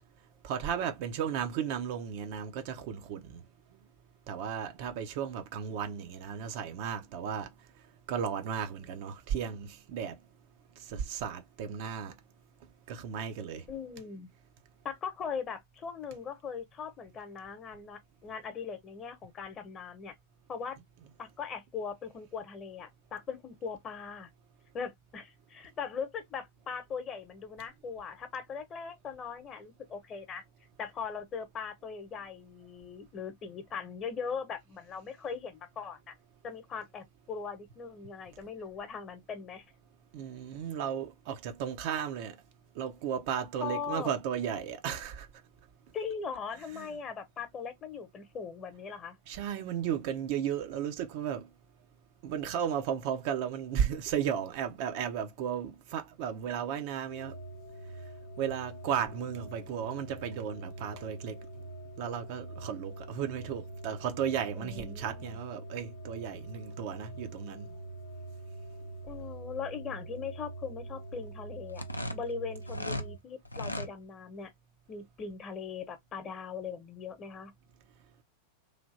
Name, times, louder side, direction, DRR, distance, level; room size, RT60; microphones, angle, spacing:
voice 1, 0.4-3.4 4.3-7.5 8.1-10.2 10.8-12.1 12.9-13.6 40.1-42.4 42.8-45.3 46.7-46.9 49.3-51.5 52.2-57.3 58.4-61.4 62.0-67.7, right 8 dB, 45° right, 0.7 m, -34 dB
voice 2, 13.7-14.3 14.8-20.1 20.5-20.8 21.2-24.3 24.7-30.4 30.8-36.1 36.4-39.6 43.6-44.1 45.9-49.2 64.6-65.2 69.0-71.8 72.1-74.5 74.9-77.5, left 6 dB, 30° left, 1.0 m, -40 dB
sound 1, 57.1-73.2, right 2 dB, 50° left, 0.7 m, -45 dB
sound 2, 71.7-73.1 73.5-73.9, left 1 dB, 85° left, 0.4 m, -36 dB
3.3 x 2.6 x 2.6 m
figure-of-eight pair, 90°, 0 cm